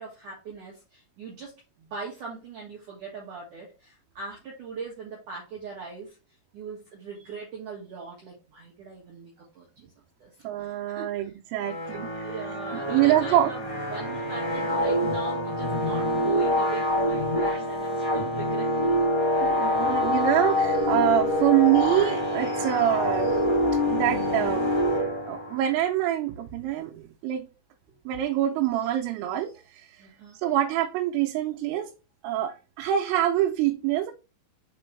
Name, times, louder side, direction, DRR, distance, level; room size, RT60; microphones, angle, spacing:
voice 1, 0.0-6.2 6.5-9.9 10.2-11.3 12.2-19.0 20.1-20.2 30.0-30.4, right 5 dB, 60° right, 2.2 m, -40 dB
voice 2, 10.4-12.3 12.7-13.5 19.4-23.4 23.9-24.7 25.3-27.5 28.1-30.1 30.3-31.9 32.2-34.1, right 12 dB, 85° right, 3.3 m, -25 dB
sound 1, 11.6-25.7, left 1 dB, 20° left, 0.8 m, -26 dB
6.2 x 5.2 x 3.3 m
omnidirectional pair, 5.7 m